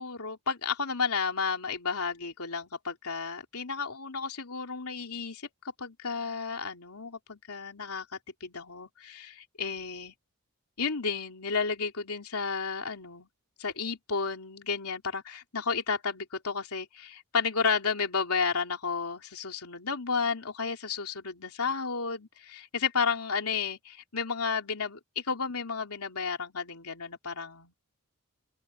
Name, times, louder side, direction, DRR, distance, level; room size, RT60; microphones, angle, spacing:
voice 1, 0.0-5.5 5.8-10.1 10.8-13.3 13.6-27.7, left 5 dB, 80° left, 3.1 m, -32 dB
open air
head